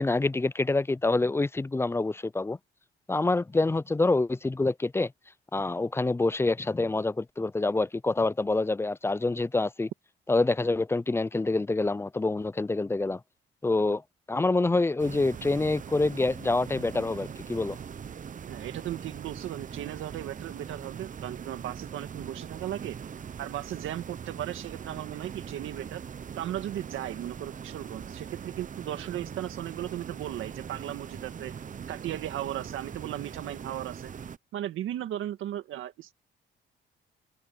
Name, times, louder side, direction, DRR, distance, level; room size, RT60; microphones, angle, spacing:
voice 1, 0.0-2.6 3.1-5.1 5.5-9.9 10.3-13.2 13.6-14.0 14.3-17.8, left 2 dB, 10° left, 0.4 m, -26 dB
sound 1, 15.0-34.4, right 7 dB, 40° right, 0.9 m, -41 dB
voice 2, 18.5-23.0 23.4-26.0 26.4-31.5 31.9-34.1 34.5-36.1, right 12 dB, 85° right, 2.0 m, -36 dB
cardioid pair, 90°, 20 cm